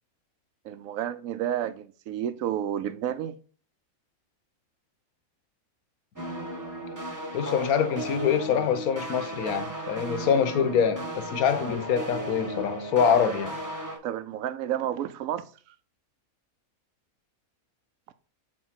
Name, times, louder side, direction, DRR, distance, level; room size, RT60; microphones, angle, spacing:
voice 1, 0.6-3.3 13.2-13.4 14.0-15.4, right 10 dB, 75° right, 1.0 m, -31 dB
sound 1, 6.2-14.0, right 1 dB, 15° right, 1.1 m, -35 dB
voice 2, 7.3-13.6, left 7 dB, 85° left, 1.3 m, -25 dB
5.1 x 4.5 x 5.7 m
omnidirectional pair, 1.5 m